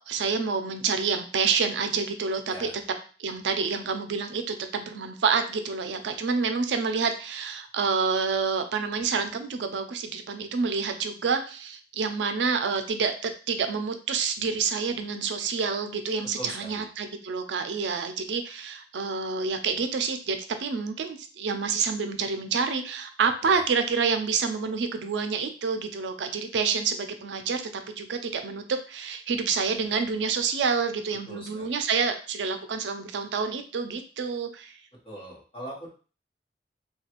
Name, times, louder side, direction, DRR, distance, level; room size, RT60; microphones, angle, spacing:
voice 1, 0.1-2.7 3.2-27.6 27.9-34.8, right 5 dB, 85° right, 7 dB, 0.4 m, -28 dB
voice 2, 2.5-2.8 16.4-16.8 23.4-23.6 31.3-31.8 35.0-35.9, right 1 dB, 30° left, -5 dB, 1.2 m, -41 dB
3.1 x 2.3 x 2.9 m, 0.38 s
head